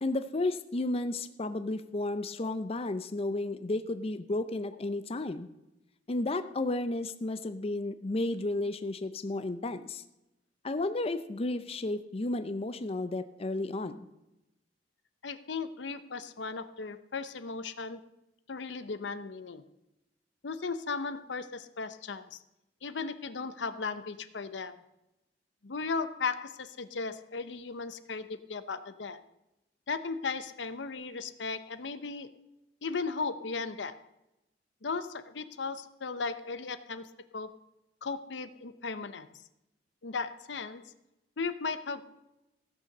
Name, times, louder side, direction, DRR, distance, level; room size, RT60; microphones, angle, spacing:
voice 1, 0.0-5.5 6.1-10.0 10.6-14.0, left 2 dB, 35° left, 11 dB, 0.5 m, -32 dB
voice 2, 15.2-18.0 18.5-19.6 20.4-22.4 22.8-24.8 25.6-29.2 29.9-32.3 32.8-34.0 34.8-37.1 37.3-37.5 38.0-39.3 40.0-40.8 41.4-42.1, left 4 dB, 75° left, 12 dB, 0.7 m, -36 dB
15.5 x 6.6 x 6.6 m, 0.92 s
head